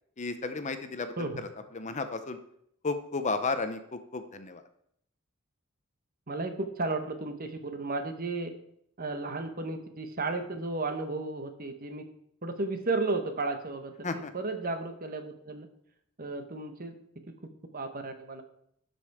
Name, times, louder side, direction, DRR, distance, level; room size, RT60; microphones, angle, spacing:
voice 1, 0.2-1.5 1.7-2.4 2.8-4.6 14.0-14.3, left 3 dB, 35° left, 9 dB, 0.7 m, -33 dB
voice 2, 6.3-8.5 9.0-12.0 12.4-15.7 16.2-17.0 17.3-17.4 17.7-18.4, right 3 dB, 45° right, 7 dB, 1.1 m, -33 dB
12.5 x 5.4 x 4.8 m, 0.71 s
head